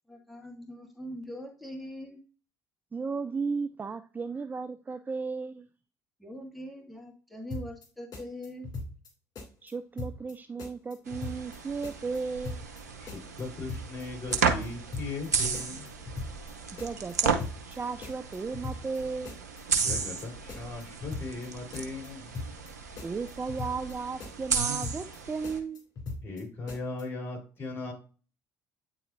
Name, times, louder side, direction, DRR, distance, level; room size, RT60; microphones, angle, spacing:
voice 1, 0.1-2.2 6.2-8.7, equal, ahead, 0 dB, 1.9 m, -42 dB
voice 2, 2.9-5.7 9.6-12.6 16.8-17.4 17.6-19.4 23.0-25.8, right 4 dB, 20° right, 11 dB, 0.4 m, -35 dB
sound 1, 7.5-7.9 8.1-9.1 9.4-9.7 10.0-10.3 10.6-11.6 11.8-12.2 12.4-12.8 13.1-14.0 14.3-14.7 14.9-15.3 15.5-16.5 16.8-17.1 17.4-17.8 18.0-19.0 19.3-19.6 19.9-20.2 20.5-21.5 21.7-22.1 22.3-22.7 23.0-23.9 24.2-24.6 24.8-25.2 25.4-26.4 26.7-27.0, left 3 dB, 45° left, 2.6 m, -39 dB
sound 2, 11.1-25.6, right 5 dB, 85° right, 0.7 m, -34 dB
voice 3, 13.0-15.9 19.7-22.3 26.2-27.9, left 3 dB, 25° left, 0 dB, 3.7 m, -38 dB
9.1 x 4.1 x 2.6 m, 0.36 s
figure-of-eight pair, 55°, 9 cm